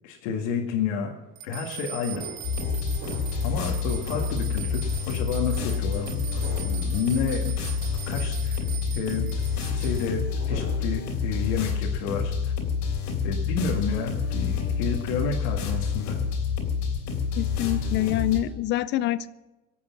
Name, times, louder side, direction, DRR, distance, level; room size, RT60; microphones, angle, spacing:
voice 1, 0.0-1.1 1.4-2.2 3.4-7.5 8.1-8.7 8.9-9.3 9.7-12.5 13.2-16.2, left 6 dB, 85° left, -1 dB, 2.0 m, -30 dB
sound 1, 1.4-10.1, right 10 dB, 55° right, 1.8 m, -40 dB
sound 2, 2.1-3.6 4.0-4.7 5.6-5.8 6.4-6.9 7.4-7.5 10.1-11.1 11.4-11.8, right 1 dB, 35° right, 5.1 m, -42 dB
sound 3, 2.4-18.4, left 6 dB, 50° left, 3.4 m, -28 dB
voice 2, 17.4-19.3, left 15 dB, 35° left, 16 dB, 0.4 m, -26 dB
24.5 x 8.5 x 5.9 m, 1.1 s
cardioid pair, 175°, 34 cm